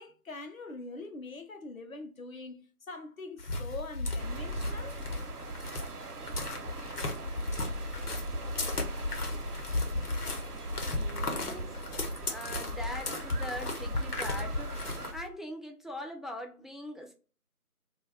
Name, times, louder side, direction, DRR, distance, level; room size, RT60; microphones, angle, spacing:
voice 1, 0.0-5.0, left 3 dB, 65° left, 0.6 m, -43 dB
sound 1, 3.4-15.3, left 2 dB, 85° left, 0.9 m, -35 dB
sound 2, 4.2-15.1, right 3 dB, 85° right, 0.6 m, -42 dB
voice 2, 10.5-14.8 15.1-17.1, equal, ahead, 0.4 m, -42 dB
2.4 x 2.3 x 3.2 m
figure-of-eight pair, 180°, 45 cm